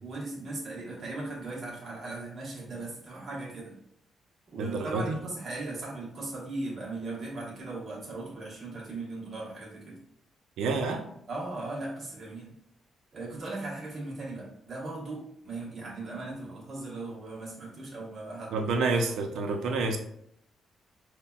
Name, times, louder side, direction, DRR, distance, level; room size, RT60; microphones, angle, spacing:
voice 1, 0.0-3.8 4.5-10.0 11.3-12.5 13.1-18.7, right 2 dB, 30° right, -5 dB, 1.1 m, -38 dB
voice 2, 4.6-5.2 10.6-11.0 18.5-20.0, right 3 dB, 85° right, 4 dB, 0.5 m, -28 dB
5.6 x 2.2 x 2.3 m, 0.72 s
cardioid pair, 180°, 0 cm